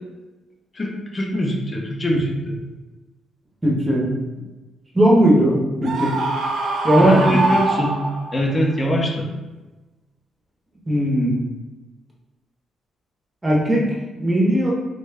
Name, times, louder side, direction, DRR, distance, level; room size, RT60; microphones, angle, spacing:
voice 1, 0.7-2.6 7.0-8.0 8.3-9.3, equal, 25° left, 1 dB, 0.5 m, -22 dB
voice 2, 3.6-4.1 4.9-6.1 6.8-7.4 10.9-11.4 13.4-13.9 14.2-14.7, right 1 dB, 10° right, -4 dB, 0.7 m, -17 dB
Screaming, 5.8-8.5, right 2 dB, 65° right, 0.4 m, -23 dB
3.0 x 2.2 x 3.4 m, 1.1 s
cardioid pair, 155°, 0 cm